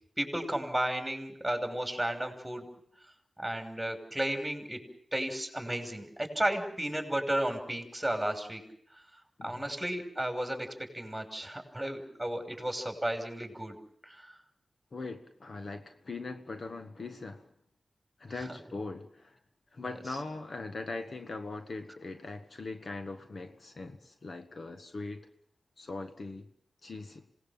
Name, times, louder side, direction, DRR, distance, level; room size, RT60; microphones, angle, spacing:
voice 1, 0.2-2.7 3.4-4.8 5.1-8.6 8.9-9.0 9.4-13.8 14.0-14.3, right 1 dB, 5° right, 5 dB, 5.9 m, -33 dB
voice 2, 14.9-17.5 18.2-19.4 19.7-25.3 25.8-26.5 26.8-27.2, left 3 dB, 60° left, 7 dB, 1.7 m, -41 dB
27.0 x 19.0 x 7.5 m, 0.65 s
wide cardioid pair, 70°, 0 cm